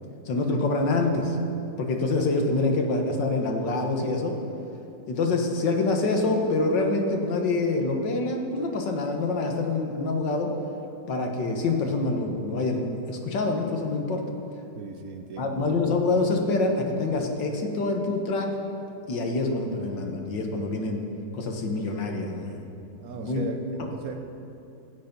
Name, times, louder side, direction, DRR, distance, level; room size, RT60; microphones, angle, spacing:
voice 1, 0.3-1.4 1.8-4.4 5.1-10.5 11.1-14.2 15.4-18.5 19.1-21.0 21.3-22.7 23.2-23.4 23.8-23.9, left 3 dB, 80° left, 3 dB, 1.9 m, -26 dB
voice 2, 14.8-15.6 23.0-24.2, right 5 dB, 60° right, 6 dB, 1.1 m, -38 dB
15.0 x 9.5 x 5.3 m, 2.7 s
omnidirectional pair, 1.9 m